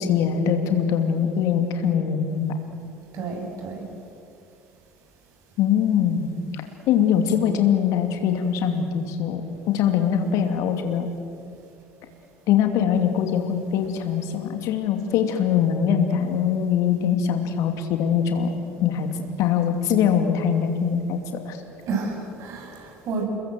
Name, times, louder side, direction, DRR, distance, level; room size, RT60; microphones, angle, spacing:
voice 1, 0.0-2.5 5.6-6.3 6.5-11.1 12.5-18.5 18.8-19.1 19.4-21.6, left 8 dB, 55° left, 6 dB, 2.6 m, -22 dB
voice 2, 3.1-3.8 21.8-23.2, right 4 dB, 50° right, 2 dB, 7.3 m, -30 dB
29.0 x 22.0 x 7.8 m, 2.5 s
figure-of-eight pair, 65°, 7 cm